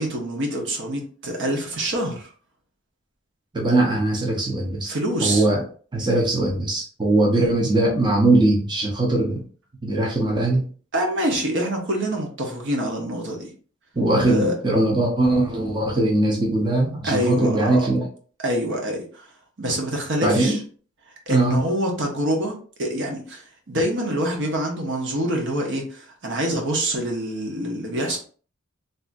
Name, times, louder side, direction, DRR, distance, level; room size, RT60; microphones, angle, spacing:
voice 1, 0.0-2.3 4.9-5.4 7.3-7.5 10.9-13.5 14.3-14.5 17.0-17.8 18.4-19.3 19.6-20.6 21.3-28.2, right 1 dB, 60° right, 1 dB, 0.9 m, -26 dB
voice 2, 3.5-4.9 5.2-5.6 5.9-9.4 9.8-10.7 13.9-18.1 20.2-20.6 21.3-21.6, right 2 dB, 20° right, -2 dB, 0.7 m, -20 dB
3.4 x 2.7 x 2.6 m, 0.41 s
head